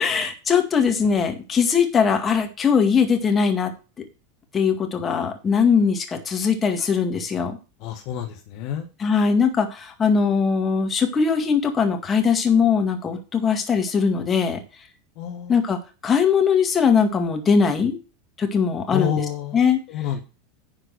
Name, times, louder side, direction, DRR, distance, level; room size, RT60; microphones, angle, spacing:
voice 1, 0.0-3.7 4.0-4.1 4.5-7.6 9.0-14.6 15.5-18.0 18.4-19.2 19.5-19.8, left 6 dB, 25° left, 4 dB, 2.0 m, -20 dB
voice 2, 7.8-8.9 15.2-15.6 18.9-19.6 19.9-20.2, left 10 dB, 55° left, 4 dB, 1.4 m, -28 dB
10.5 x 4.5 x 6.4 m, 0.33 s
hypercardioid pair, 90°, 0 cm